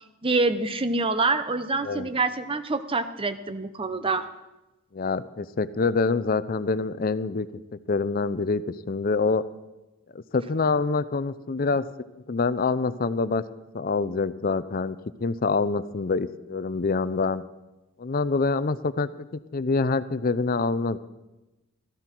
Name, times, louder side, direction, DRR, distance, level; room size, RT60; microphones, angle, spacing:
voice 1, 0.2-4.2, right 3 dB, 25° right, 11 dB, 0.7 m, -26 dB
voice 2, 4.9-7.5 7.9-9.4 10.1-11.8 12.3-13.4 13.7-17.4 18.0-19.1 19.5-21.0, left 4 dB, 40° left, 15 dB, 0.5 m, -26 dB
17.5 x 13.0 x 4.5 m, 1.0 s
head